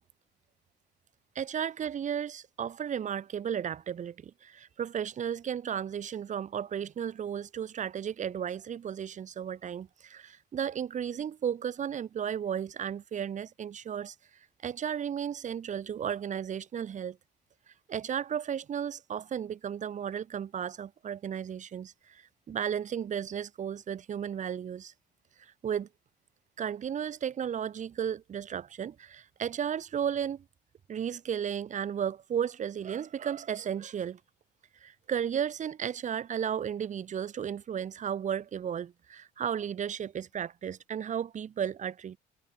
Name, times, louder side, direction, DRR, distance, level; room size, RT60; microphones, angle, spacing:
voice 1, 1.4-14.1 14.6-17.2 17.9-24.9 25.4-25.9 26.6-30.4 30.9-34.2 34.8-42.2, right 8 dB, 45° right, 4.0 m, -34 dB
cardioid pair, 110°, 17 cm